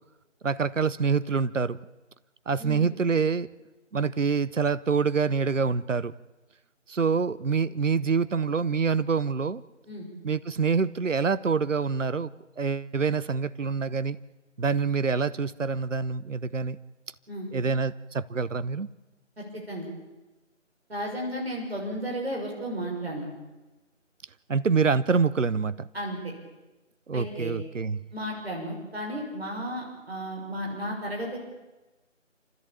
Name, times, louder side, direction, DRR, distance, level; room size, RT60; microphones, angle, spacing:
voice 1, 0.4-1.8 2.5-3.5 3.9-6.1 6.9-9.6 10.2-12.3 12.6-14.2 14.6-16.8 17.5-18.9 24.5-25.9 27.1-28.0, right 5 dB, 75° right, 16 dB, 0.8 m, -26 dB
voice 2, 19.4-19.9 20.9-23.3 25.9-26.3 27.1-27.5 28.1-31.4, equal, 55° right, -1 dB, 6.3 m, -33 dB
27.5 x 14.0 x 8.8 m, 1.1 s
figure-of-eight pair, 165°, 38 cm